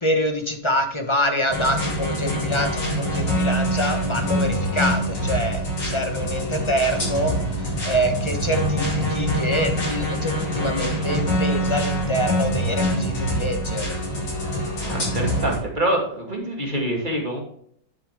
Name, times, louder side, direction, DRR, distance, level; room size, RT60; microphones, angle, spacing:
voice 1, 0.0-13.9, equal, 20° left, 5 dB, 1.0 m, -25 dB
sound 1, 1.5-15.6, equal, 80° left, 5.2 m, -25 dB
voice 2, 14.4-17.4, right 1 dB, 25° right, 0 dB, 2.6 m, -26 dB
11.0 x 6.8 x 3.7 m, 0.65 s
omnidirectional pair, 1.9 m